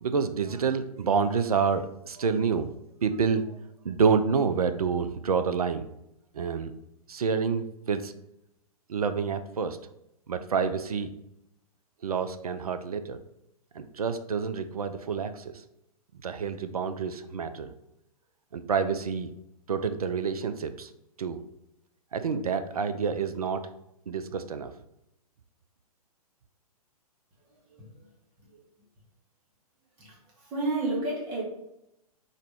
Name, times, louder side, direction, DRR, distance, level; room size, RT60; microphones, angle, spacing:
voice 1, 0.0-2.7 3.0-3.6 3.8-5.9 6.3-6.7 7.1-8.1 8.9-9.8 10.3-11.1 12.0-13.2 13.7-15.6 16.2-17.7 18.5-19.3 19.7-20.9 21.2-21.4 22.1-23.7 24.1-24.7, right 5 dB, 75° right, 9 dB, 0.5 m, -28 dB
voice 2, 30.5-31.4, right 2 dB, 25° right, -4 dB, 1.5 m, -29 dB
4.0 x 3.0 x 3.4 m, 0.83 s
figure-of-eight pair, 110°, 19 cm